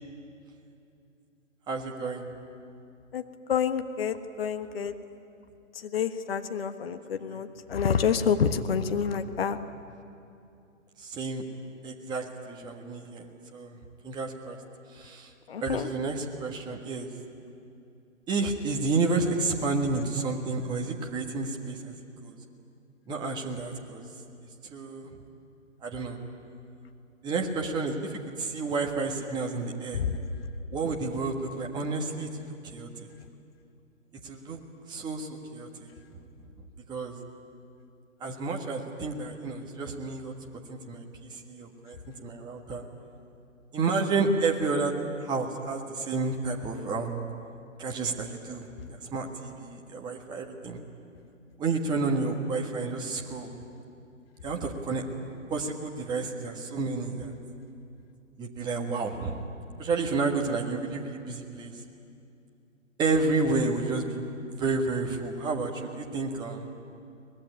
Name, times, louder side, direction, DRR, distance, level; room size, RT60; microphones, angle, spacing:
voice 1, 1.7-2.3 7.3-7.4 11.0-11.4 11.8-13.3 13.5-13.8 14.0-14.6 14.9-15.3 15.6-17.1 18.3-21.9 22.2-22.3 23.1-24.0 24.7-25.1 25.8-26.2 27.2-30.0 30.7-33.1 34.2-34.6 34.9-35.9 36.9-37.2 38.2-40.3 40.7-42.8 43.7-44.9 45.2-47.2 47.8-50.8 51.6-53.5 54.4-55.0 55.5-57.3 58.4-59.4 59.8-61.8 63.0-64.2 64.6-66.7, right 3 dB, 10° right, 1 dB, 1.5 m, -30 dB
voice 2, 3.5-4.9 5.8-9.6 15.5-15.9 29.9-30.2, left 7 dB, 45° left, 9 dB, 1.4 m, -28 dB
24.0 x 20.0 x 10.0 m, 2.6 s
figure-of-eight pair, 140°, 39 cm